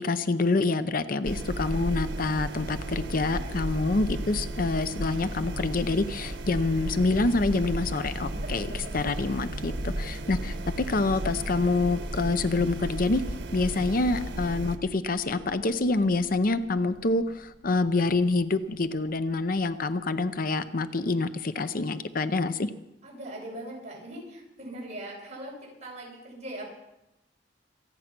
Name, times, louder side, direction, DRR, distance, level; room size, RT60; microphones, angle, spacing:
voice 1, 0.0-13.2 13.5-22.7, left 3 dB, 50° left, 12 dB, 0.7 m, -27 dB
sound 1, 1.2-14.8, right 1 dB, 85° right, 1.4 m, -34 dB
voice 2, 3.2-3.6 8.4-9.0 23.0-26.7, right 1 dB, 40° right, -3 dB, 7.1 m, -41 dB
sound 2, 7.0-20.1, equal, 5° right, 6.2 m, -46 dB
26.0 x 9.2 x 6.0 m, 0.92 s
head